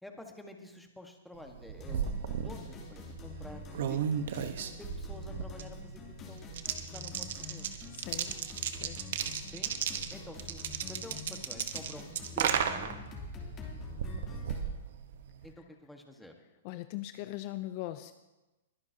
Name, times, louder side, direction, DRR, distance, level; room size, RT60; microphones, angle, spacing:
voice 1, 0.0-3.6 3.9-4.3 4.8-6.0 6.3-6.5 6.8-7.7 9.5-9.8 10.1-13.0 15.4-16.3, left 1 dB, 5° left, 3 dB, 1.5 m, -49 dB
sound 1, 1.5-15.5, right 8 dB, 65° right, 1.0 m, -36 dB
sound 2, 1.8-14.7, left 5 dB, 25° left, 3.0 m, -47 dB
voice 2, 7.9-8.4 8.7-9.0 16.6-18.1, left 15 dB, 45° left, 11 dB, 0.5 m, -40 dB
22.0 x 10.5 x 2.8 m, 1.1 s
hypercardioid pair, 135°, 0 cm